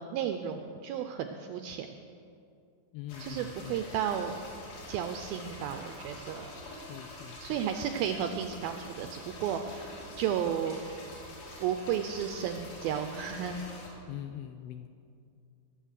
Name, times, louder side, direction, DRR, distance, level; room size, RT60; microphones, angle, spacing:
voice 1, 0.0-1.9 3.2-4.4 4.9-6.5 7.4-10.8 11.6-13.6, right 8 dB, 90° right, 6 dB, 2.2 m, -33 dB
voice 2, 2.9-3.8 6.8-7.6 14.1-14.9, left 11 dB, 85° left, 8 dB, 2.2 m, -43 dB
sound 1, 3.1-13.9, left 1 dB, 60° left, 4.5 m, -46 dB
20.5 x 8.0 x 6.5 m, 2.5 s
omnidirectional pair, 4.9 m